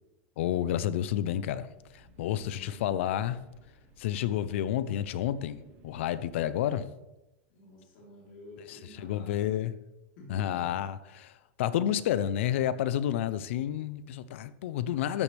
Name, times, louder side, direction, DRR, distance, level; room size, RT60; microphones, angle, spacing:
voice 1, 0.4-1.7 1.9-3.4 4.0-5.6 5.8-6.9 8.7-9.7 10.3-11.3 11.6-15.2, left 11 dB, 75° left, 15 dB, 0.6 m, -30 dB
sound 1, 1.6-6.7, right 1 dB, 30° right, 1.7 m, -59 dB
voice 2, 2.3-3.1 7.5-9.5 10.2-10.7, left 1 dB, 55° left, -4 dB, 3.6 m, -50 dB
13.5 x 8.5 x 3.4 m, 0.98 s
supercardioid pair, 180°, 7 cm